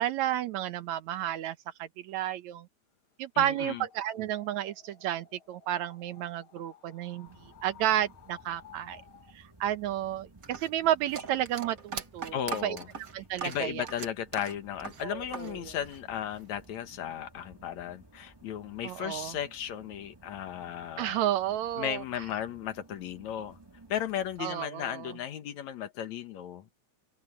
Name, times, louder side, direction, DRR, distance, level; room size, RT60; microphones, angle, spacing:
voice 1, 0.0-2.7 3.2-9.0 9.3-12.8 13.1-13.9 15.0-15.8 18.8-19.4 21.0-22.0 24.4-25.1, right 12 dB, 75° right, 2.2 m, -32 dB
voice 2, 3.4-3.8 12.3-12.9 13.4-21.2 21.8-23.6 23.9-26.7, left 10 dB, 70° left, 2.7 m, -35 dB
sound 1, 3.6-9.4, left 8 dB, 50° left, 2.3 m, -56 dB
sound 2, 7.3-24.4, right 2 dB, 15° right, 1.0 m, -56 dB
sound 3, 10.4-15.5 15.8-16.6, right 5 dB, 45° right, 1.2 m, -40 dB
open air
omnidirectional pair, 3.3 m